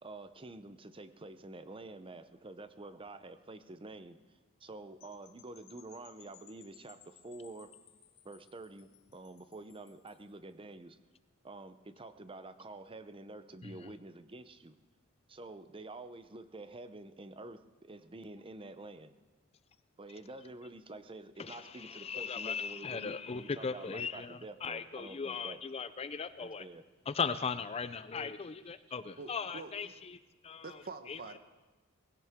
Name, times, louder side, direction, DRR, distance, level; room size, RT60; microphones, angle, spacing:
voice 1, 0.0-7.8 8.2-11.0 11.4-14.8 15.3-19.2 20.0-25.6 26.4-26.8, right 2 dB, 25° right, 11 dB, 0.7 m, -48 dB
sound 1, 5.0-10.3, left 10 dB, 90° left, 1.2 m, -61 dB
voice 2, 21.4-26.6 27.1-30.6 31.1-31.2, left 5 dB, 30° left, 13 dB, 0.4 m, -38 dB
voice 3, 28.7-29.9 30.6-31.4, right 3 dB, 45° right, 9 dB, 1.0 m, -47 dB
20.5 x 16.5 x 3.6 m, 1.2 s
head